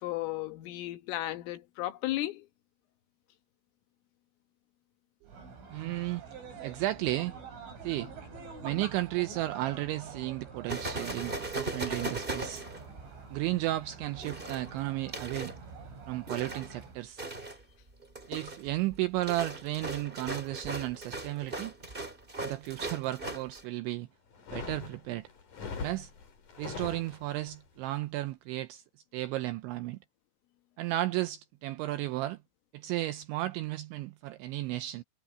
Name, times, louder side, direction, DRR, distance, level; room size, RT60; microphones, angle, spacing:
voice 1, 0.0-2.5, left 16 dB, 75° left, 3.8 m, -34 dB
sound 1, 5.3-17.0, right 5 dB, 65° right, 10.0 m, -46 dB
voice 2, 5.7-6.2 6.6-7.4 7.8-8.1 8.6-12.6 13.3-15.5 16.1-17.2 18.3-21.7 22.4-24.1 24.5-25.3 25.8-26.1 26.6-28.8 29.1-30.0 30.8-32.4 32.7-35.0, right 16 dB, 85° right, 2.6 m, -34 dB
sound 2, 10.7-13.3 14.2-15.6 16.3-16.8 17.2-17.6 18.0-23.6, right 2 dB, 15° right, 1.9 m, -38 dB
sound 3, 24.3-27.6, left 5 dB, 40° left, 4.9 m, -41 dB
omnidirectional pair, 6.0 m